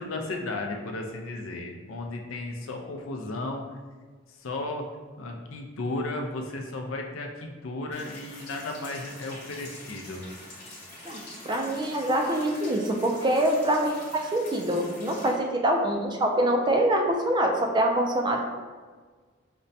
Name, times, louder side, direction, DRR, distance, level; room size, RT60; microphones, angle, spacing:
voice 1, 0.0-3.6 4.3-4.9 5.2-10.2, left 2 dB, 75° left, 3 dB, 0.5 m, -34 dB
sound 1, 7.9-15.3, left 1 dB, 40° left, 1.0 m, -45 dB
voice 2, 11.0-18.4, right 1 dB, 20° right, 2 dB, 0.3 m, -25 dB
5.1 x 2.1 x 2.6 m, 1.5 s
head